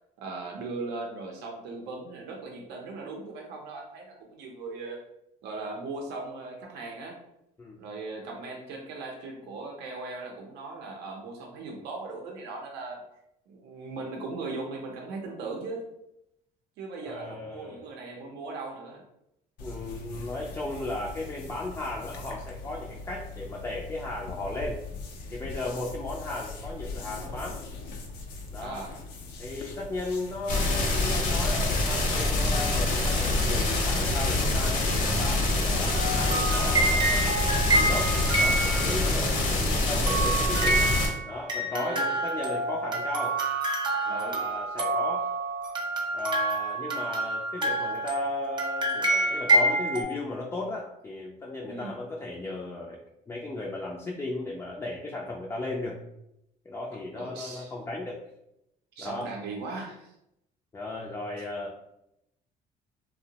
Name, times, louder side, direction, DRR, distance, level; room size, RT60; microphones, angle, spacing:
voice 1, 0.2-5.0 5.4-7.2 7.8-13.0 13.5-15.9 16.8-19.0 28.6-29.0 41.7-42.1 44.1-44.4 51.6-52.0 57.1-57.7 59.0-60.1, right 3 dB, 85° right, 1 dB, 0.5 m, -38 dB
voice 2, 17.0-17.8 19.6-24.8 25.3-27.6 28.5-28.9 29.4-37.3 37.7-40.9 41.3-43.4 44.1-45.3 46.1-56.0 56.7-58.2 59.0-59.3 60.7-61.8, left 2 dB, 15° left, -2 dB, 0.3 m, -36 dB
sound 1, 19.6-37.4, left 3 dB, 90° left, 0.5 m, -41 dB
sound 2, 30.5-41.1, left 2 dB, 50° left, 0.6 m, -25 dB
sound 3, 35.9-39.3 40.1-50.0, right 2 dB, 25° right, 0.6 m, -27 dB
2.6 x 2.0 x 2.7 m, 0.82 s
cardioid pair, 110°, 17 cm